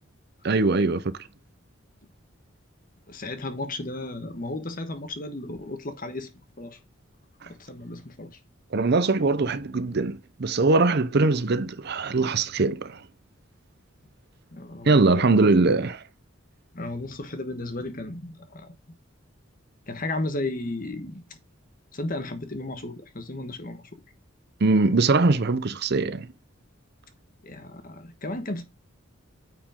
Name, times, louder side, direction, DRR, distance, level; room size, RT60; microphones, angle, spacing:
voice 1, 0.4-1.1 8.7-13.0 14.9-16.0 24.6-26.3, right 3 dB, 50° right, 0.7 m, -21 dB
voice 2, 3.1-6.8 7.5-8.4 14.5-15.5 16.7-18.8 19.9-21.2 21.9-23.8 27.4-28.6, left 2 dB, 45° left, 1.3 m, -34 dB
9.2 x 5.1 x 3.6 m
head